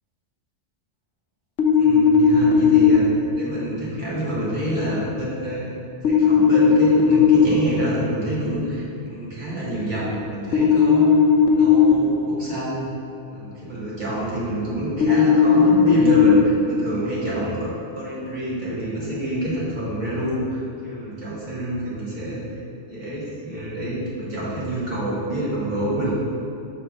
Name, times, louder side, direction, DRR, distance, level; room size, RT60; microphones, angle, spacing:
sound 1, 1.6-3.0 6.0-7.4 10.5-11.9 15.0-16.4, left 6 dB, 75° left, 0.9 m, -15 dB
voice 1, 1.8-3.0 3.4-5.7 6.1-12.9 13.3-17.7 17.9-22.4 22.9-26.1, right 1 dB, 40° right, -8 dB, 1.6 m, -27 dB
5.6 x 3.5 x 5.2 m, 2.6 s
omnidirectional pair, 1.3 m